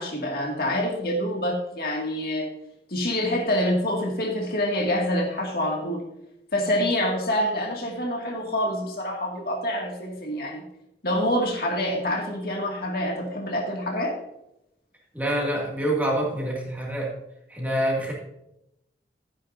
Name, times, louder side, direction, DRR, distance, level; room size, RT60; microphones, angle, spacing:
voice 1, 0.0-2.5 2.9-6.0 6.5-10.6 11.0-14.2, left 1 dB, 55° left, 1 dB, 2.1 m, -26 dB
voice 2, 15.1-17.1 17.5-18.1, right 1 dB, 10° right, -3 dB, 2.2 m, -26 dB
12.0 x 10.0 x 2.7 m, 0.85 s
head